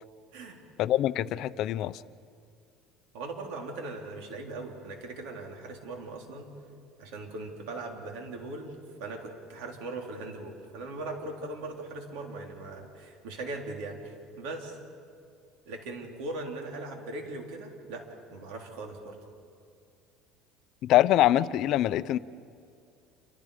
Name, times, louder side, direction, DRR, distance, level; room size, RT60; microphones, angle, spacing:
voice 1, 0.8-2.0 20.8-22.2, left 13 dB, 55° left, 15 dB, 0.6 m, -24 dB
voice 2, 3.1-6.5 7.0-14.8 15.7-19.2, right 2 dB, 80° right, 2 dB, 3.9 m, -39 dB
28.5 x 25.0 x 5.1 m, 2.4 s
cardioid pair, 135°, 0 cm